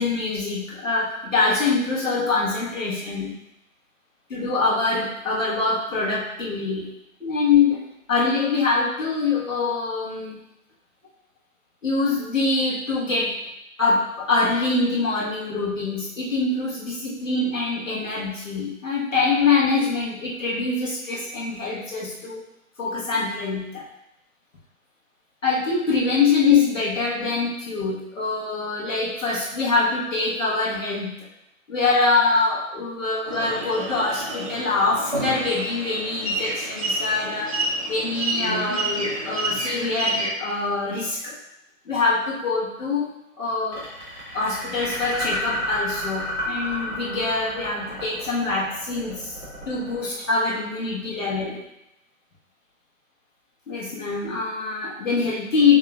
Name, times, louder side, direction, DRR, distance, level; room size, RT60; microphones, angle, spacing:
voice 1, 0.0-3.3 4.3-6.9 7.2-7.8 8.1-10.4 11.8-13.3 13.8-22.4 22.8-23.8 25.4-31.2 31.7-37.5 37.9-41.4 41.8-43.8 44.3-49.3 49.6-51.6 53.7-55.8, left 4 dB, 60° left, -6 dB, 1.5 m, -24 dB
sound 1, 33.3-40.3, right 2 dB, 25° right, 0.5 m, -29 dB
sound 2, 43.7-50.8, equal, 5° left, 0.8 m, -32 dB
6.6 x 2.9 x 2.4 m, 0.85 s
figure-of-eight pair, 145°, 42 cm